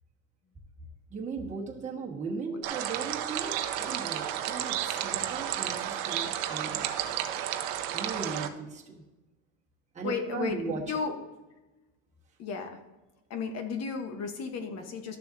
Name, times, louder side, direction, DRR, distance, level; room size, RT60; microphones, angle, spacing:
voice 1, 1.1-6.9 7.9-9.0 9.9-10.8, right 4 dB, 20° right, -3 dB, 1.4 m, -37 dB
sound 1, 2.6-8.5, right 11 dB, 90° right, 0.8 m, -32 dB
voice 2, 10.0-10.6 10.9-11.2 12.4-12.8 13.3-15.2, left 5 dB, 45° left, 6 dB, 1.2 m, -33 dB
13.0 x 6.8 x 2.7 m, 1.1 s
cardioid pair, 145°, 36 cm